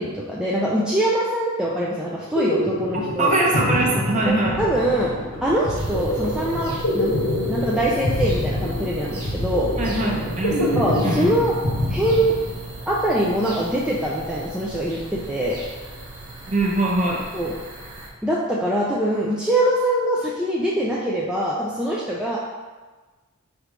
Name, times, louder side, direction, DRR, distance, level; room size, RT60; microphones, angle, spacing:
voice 1, 0.0-3.3 4.2-5.1 5.4-7.1 7.5-9.7 10.6-11.5 11.9-12.3 12.9-15.6 17.3-17.5 18.2-22.4, right 1 dB, 5° right, -6 dB, 0.3 m, -23 dB
sound 1, 2.1-12.9, left 1 dB, 90° left, 1.4 m, -26 dB
voice 2, 3.2-4.6 9.8-11.3 16.5-17.2, right 2 dB, 35° right, -2 dB, 0.8 m, -22 dB
sound 2, 5.8-18.1, right 2 dB, 90° right, 1.0 m, -37 dB
4.8 x 3.3 x 3.1 m, 1.3 s
head